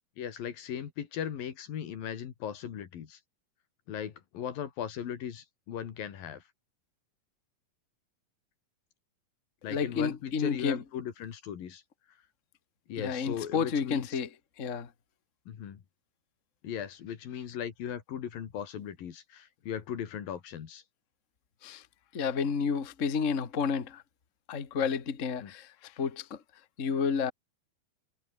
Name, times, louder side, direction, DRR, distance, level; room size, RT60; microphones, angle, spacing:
voice 1, 0.2-3.2 3.9-6.4 9.6-11.8 12.9-14.1 15.5-15.8 16.6-20.8 25.4-25.5, left 9 dB, 80° left, 4.1 m, -38 dB
voice 2, 9.7-10.8 13.0-14.3 14.6-14.9 21.6-21.8 22.1-24.0 24.5-26.4 26.8-27.3, left 6 dB, 30° left, 1.6 m, -31 dB
omnidirectional pair, 4.0 m